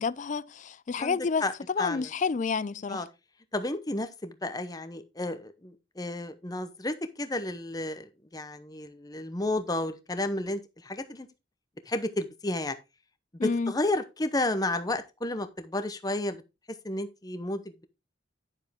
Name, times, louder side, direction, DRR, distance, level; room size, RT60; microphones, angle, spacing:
voice 1, 0.0-1.4 1.7-3.1 13.4-13.7, left 5 dB, 40° left, 0.4 m, -29 dB
voice 2, 1.0-1.5 1.8-2.1 2.9-3.1 3.5-11.3 11.9-12.8 13.4-16.4 16.8-17.8, left 2 dB, 20° left, 0.8 m, -32 dB
9.9 x 7.0 x 3.5 m
head